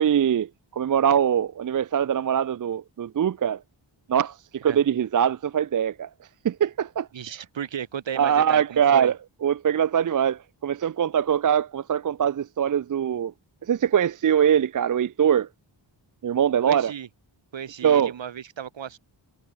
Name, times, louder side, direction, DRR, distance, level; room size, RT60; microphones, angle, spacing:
voice 1, 0.0-3.6 4.1-6.1 6.4-7.1 8.2-9.2 9.4-13.3 13.7-15.5 16.2-16.9 17.8-18.1, right 8 dB, 45° right, 0.5 m, -22 dB
voice 2, 7.1-9.1 16.7-17.1 17.5-19.0, right 8 dB, 70° right, 1.5 m, -34 dB
wide cardioid pair, 130°, 47 cm